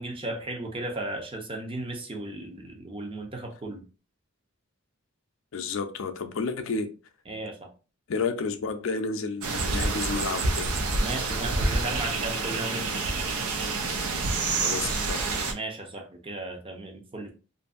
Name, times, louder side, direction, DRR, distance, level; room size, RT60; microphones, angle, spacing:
voice 1, 0.0-3.8 7.3-7.7 11.0-13.0 15.5-17.3, right 2 dB, 25° right, 0.5 m, -35 dB
voice 2, 5.5-6.9 8.1-10.7 14.6-15.2, left 4 dB, 70° left, 0.4 m, -31 dB
sound 1, 9.4-15.5, right 3 dB, 90° right, 0.5 m, -28 dB
2.6 x 2.5 x 2.4 m
head